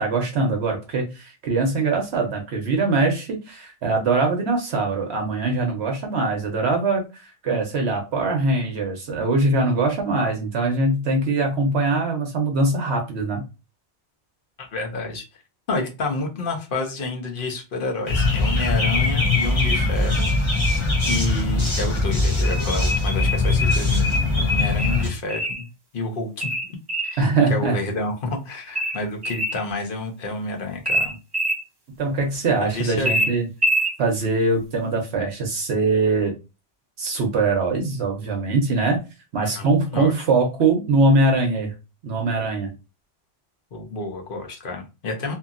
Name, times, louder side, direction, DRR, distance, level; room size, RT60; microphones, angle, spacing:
voice 1, 0.0-13.4 27.2-27.8 32.0-33.5 34.0-36.3 37.0-39.0 39.3-41.7 42.0-42.7, right 3 dB, 65° right, 2 dB, 0.9 m, -22 dB
voice 2, 14.6-15.2 15.7-20.3 20.6-20.8 21.0-24.1 24.3-25.7 25.9-26.5 27.0-27.2 27.5-31.2 32.6-33.3 39.4-39.7 39.9-40.1 43.7-45.3, left 2 dB, 50° left, 2 dB, 0.9 m, -29 dB
sound 1, 18.1-25.1, left 2 dB, 30° left, 0.7 m, -21 dB
sound 2, 24.8-25.6 26.4-27.2 28.7-29.6 30.8-31.6 33.0-33.9, equal, 30° right, 0.5 m, -24 dB
2.8 x 2.7 x 2.4 m, 0.28 s
omnidirectional pair, 1.2 m